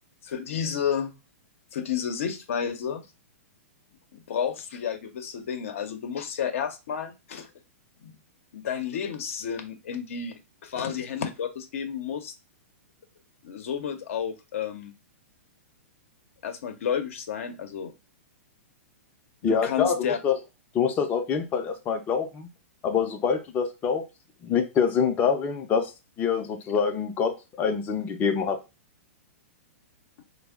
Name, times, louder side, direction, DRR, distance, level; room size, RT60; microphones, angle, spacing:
voice 1, 0.2-1.1 1.7-3.0 4.3-7.5 8.0-8.1 8.5-12.3 13.4-14.9 16.4-17.9 19.4-20.2, left 7 dB, 70° left, 0.6 m, -31 dB
voice 2, 19.4-20.0 20.2-20.4 20.7-22.5 22.8-24.0 24.4-25.9 26.2-28.6, left 6 dB, 25° left, 0.5 m, -25 dB
3.5 x 2.0 x 3.4 m
hypercardioid pair, 135°, 8 cm